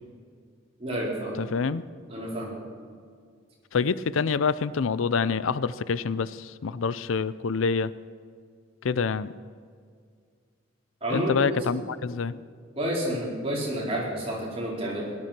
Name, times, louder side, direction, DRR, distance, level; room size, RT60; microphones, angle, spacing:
voice 1, 0.8-1.3 2.1-2.6 11.0-11.6 12.8-15.2, equal, 30° right, -4 dB, 4.4 m, -29 dB
voice 2, 1.4-1.9 3.7-7.9 8.8-9.3 11.1-12.4, left 5 dB, 80° left, 17 dB, 0.5 m, -26 dB
17.5 x 12.0 x 6.0 m, 2.1 s
head